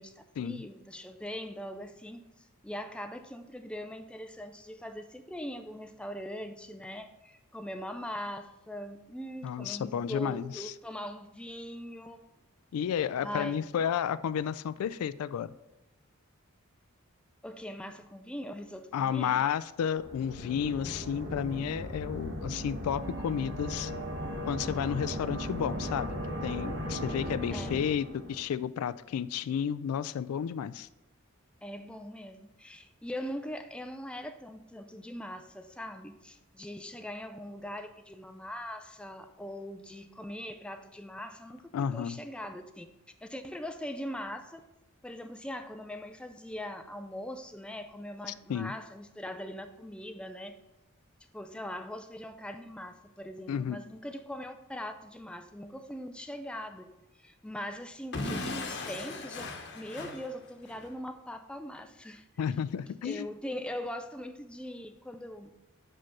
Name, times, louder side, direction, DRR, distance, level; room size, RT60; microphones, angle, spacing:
voice 1, 0.0-12.3 13.2-13.6 17.4-19.5 27.5-27.8 31.6-42.9 43.2-44.6 45.0-50.6 51.3-62.3 63.0-65.5, equal, 5° left, 8 dB, 0.4 m, -41 dB
voice 2, 9.4-10.7 12.7-15.5 18.9-23.9 24.4-26.1 26.4-30.9 41.7-42.2 48.3-48.7 53.5-53.8 62.4-63.3, left 8 dB, 85° left, 16 dB, 0.3 m, -32 dB
sound 1, 20.0-28.5, equal, 60° right, 1.7 m, -37 dB
Explosion / Shatter, 58.1-60.9, left 2 dB, 50° left, 1.0 m, -37 dB
5.5 x 5.2 x 5.9 m, 0.97 s
head